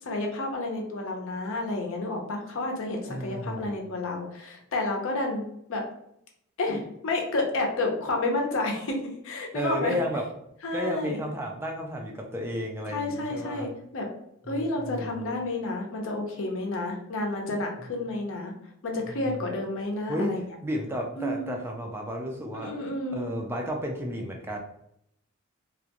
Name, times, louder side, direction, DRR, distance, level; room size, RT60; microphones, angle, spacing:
voice 1, 0.0-5.4 5.7-5.8 6.6-10.0 10.6-11.2 12.9-14.1 14.4-18.5 18.8-20.4 21.2-21.6 22.5-23.3, left 2 dB, 65° left, 1 dB, 0.6 m, -30 dB
voice 2, 3.1-3.8 9.5-10.2 10.7-13.7 14.5-15.3 17.8-17.9 19.1-19.4 20.1-20.3 20.6-22.7 23.1-24.6, equal, 10° right, 1 dB, 0.3 m, -32 dB
2.4 x 2.2 x 2.8 m, 0.75 s
head